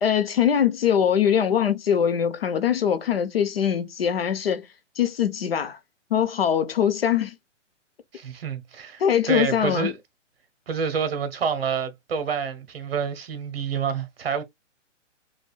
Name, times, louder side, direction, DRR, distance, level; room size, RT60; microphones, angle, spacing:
voice 1, 0.0-4.7 5.0-5.8 6.1-7.3 9.0-9.9, left 8 dB, 50° left, 1.0 m, -22 dB
voice 2, 8.1-10.0 10.7-14.4, right 6 dB, 50° right, 1.4 m, -28 dB
6.2 x 2.6 x 2.3 m
hypercardioid pair, 170°, 37 cm